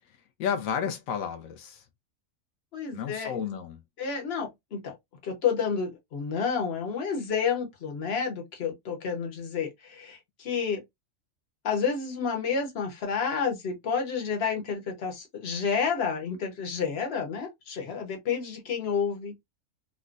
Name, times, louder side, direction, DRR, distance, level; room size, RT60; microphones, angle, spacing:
voice 1, 0.4-1.8 2.9-3.8, left 7 dB, 90° left, 1.1 m, -32 dB
voice 2, 2.7-3.4 4.0-5.0 5.2-10.8 11.6-19.3, left 6 dB, 55° left, 1.2 m, -30 dB
3.6 x 2.1 x 2.4 m
omnidirectional pair, 1.4 m